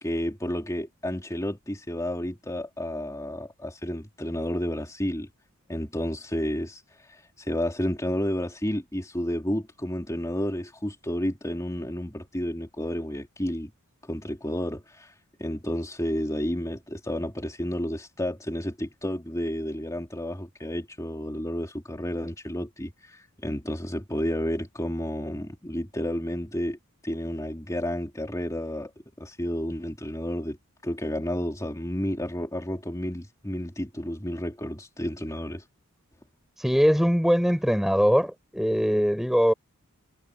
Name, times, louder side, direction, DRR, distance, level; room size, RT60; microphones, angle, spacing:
voice 1, 0.0-5.3 5.7-13.7 14.0-15.1 15.4-26.8 27.0-28.9 29.2-30.6 30.8-35.6, equal, 15° left, 3.3 m, -31 dB
voice 2, 36.6-39.5, equal, ahead, 7.1 m, -22 dB
head